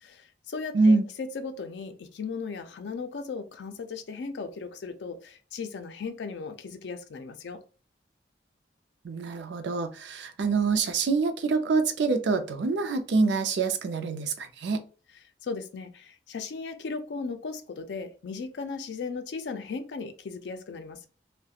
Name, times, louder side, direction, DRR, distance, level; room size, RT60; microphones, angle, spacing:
voice 1, 0.0-7.6 15.4-21.1, left 4 dB, 90° left, 0.4 m, -37 dB
voice 2, 0.7-1.1 9.0-14.8, right 4 dB, 90° right, 0.4 m, -25 dB
2.3 x 2.1 x 2.7 m
head